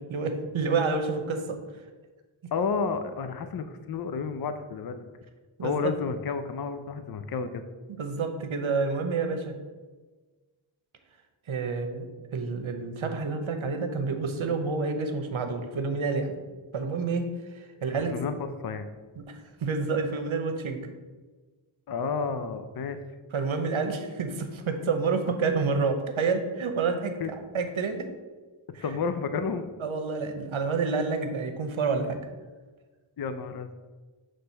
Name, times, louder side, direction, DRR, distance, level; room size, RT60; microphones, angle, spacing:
voice 1, 0.0-1.6 5.6-5.9 8.0-9.5 11.5-16.3 16.7-17.3 17.5-18.1 19.2-20.9 23.3-28.1 28.7-28.8 29.8-32.2, right 4 dB, 70° right, 6 dB, 0.9 m, -29 dB
voice 2, 2.5-5.0 5.6-7.6 17.8-18.9 21.9-23.0 27.2-27.3 28.8-29.7 33.2-33.7, left 5 dB, 50° left, 9 dB, 0.5 m, -31 dB
6.1 x 3.3 x 5.5 m, 1.3 s
wide cardioid pair, 65°, 50 cm